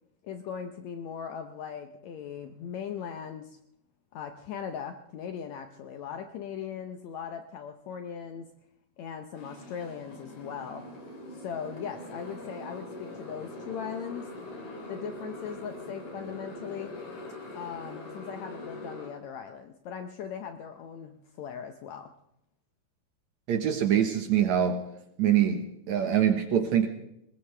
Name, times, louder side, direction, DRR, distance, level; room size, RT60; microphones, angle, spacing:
voice 1, 0.2-3.6 4.1-8.5 9.0-10.9 11.3-14.3 14.9-17.0 17.5-22.1, left 7 dB, 90° left, 7 dB, 1.5 m, -39 dB
Motorcycle, 9.4-19.1, left 1 dB, 55° left, 4.6 m, -42 dB
voice 2, 23.5-24.8 25.2-26.9, right 9 dB, 65° right, 6 dB, 2.0 m, -24 dB
20.5 x 20.5 x 3.3 m, 0.77 s
omnidirectional pair, 4.3 m